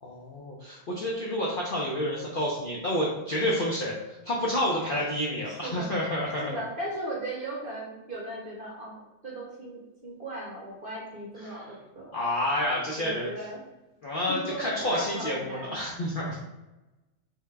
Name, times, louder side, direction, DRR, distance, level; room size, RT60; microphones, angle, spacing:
voice 1, 0.0-6.5 11.4-11.6 12.1-13.3 14.0-16.4, left 1 dB, 60° left, -4 dB, 0.5 m, -29 dB
voice 2, 5.5-6.0 6.4-12.1 13.0-13.6 14.3-15.8, right 1 dB, 45° right, -4 dB, 0.8 m, -37 dB
3.5 x 2.8 x 3.2 m, 1.0 s
omnidirectional pair, 1.5 m